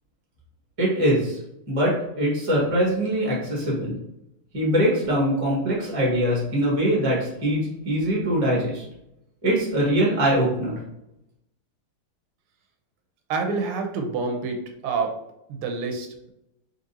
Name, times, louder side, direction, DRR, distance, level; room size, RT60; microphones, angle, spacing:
voice 1, 0.8-1.4 1.7-4.0 4.5-8.8 9.4-10.8, equal, 20° right, -5 dB, 1.1 m, -22 dB
voice 2, 13.3-14.6 14.8-15.1 15.5-16.3, right 4 dB, 90° right, 4 dB, 1.6 m, -27 dB
3.8 x 3.3 x 2.7 m, 0.84 s
omnidirectional pair, 2.4 m